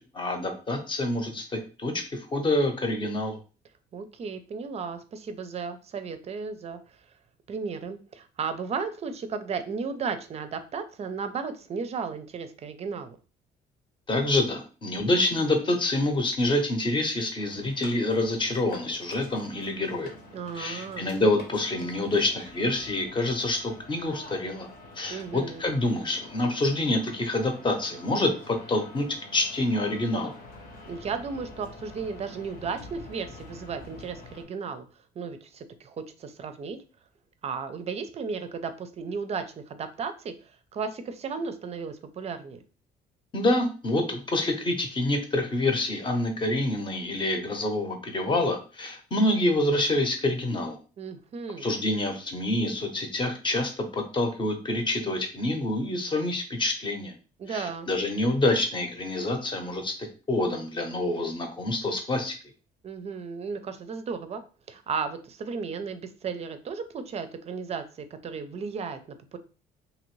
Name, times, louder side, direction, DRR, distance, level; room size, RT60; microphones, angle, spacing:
voice 1, 0.0-3.4 14.1-20.1 20.5-24.7 25.0-29.1 29.3-30.3 43.3-50.8 51.6-57.1 57.5-59.9 60.3-62.3, left 1 dB, 30° left, 4 dB, 0.8 m, -27 dB
voice 2, 3.9-6.8 7.5-13.2 20.3-21.1 25.1-25.6 30.9-34.9 35.2-36.8 37.4-42.6 51.0-51.7 57.4-57.9 62.8-64.4 64.7-69.4, right 5 dB, 40° right, 10 dB, 0.5 m, -34 dB
sound 1, 17.4-34.4, left 2 dB, 60° left, 1.0 m, -47 dB
2.9 x 2.5 x 3.1 m, 0.35 s
cardioid pair, 110°, 17 cm